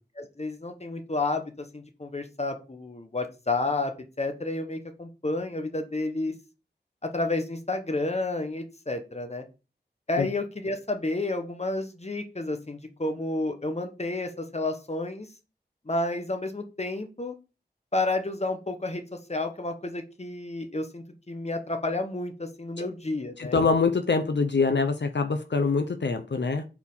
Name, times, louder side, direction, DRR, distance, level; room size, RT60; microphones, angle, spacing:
voice 1, 0.2-3.9 4.2-6.3 7.0-9.4 10.1-15.3 15.9-17.3 17.9-19.0 19.3-23.6, left 2 dB, 35° left, 1.1 m, -30 dB
voice 2, 23.4-26.6, left 4 dB, 85° left, 0.7 m, -24 dB
4.4 x 4.3 x 5.5 m
wide cardioid pair, 55°, 18 cm